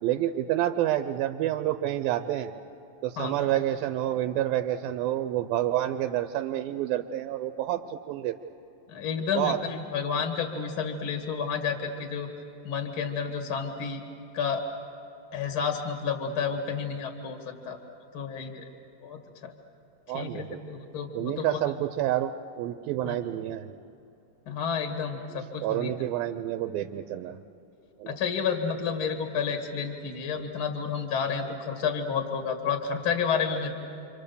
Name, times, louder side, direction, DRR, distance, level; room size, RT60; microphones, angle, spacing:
voice 1, 0.0-2.5 3.0-8.4 9.3-9.6 20.1-20.6 21.1-22.3 22.6-23.7 25.6-27.4 28.0-28.2, right 13 dB, 80° right, 8 dB, 2.5 m, -28 dB
voice 2, 3.2-3.5 8.9-12.3 12.6-14.0 14.3-14.6 15.3-17.8 18.1-18.7 19.0-19.5 20.1-21.6 23.0-23.2 24.5-25.9 28.1-33.7, left 6 dB, 45° left, 4 dB, 2.1 m, -30 dB
30.0 x 25.5 x 6.9 m, 2.8 s
omnidirectional pair, 4.2 m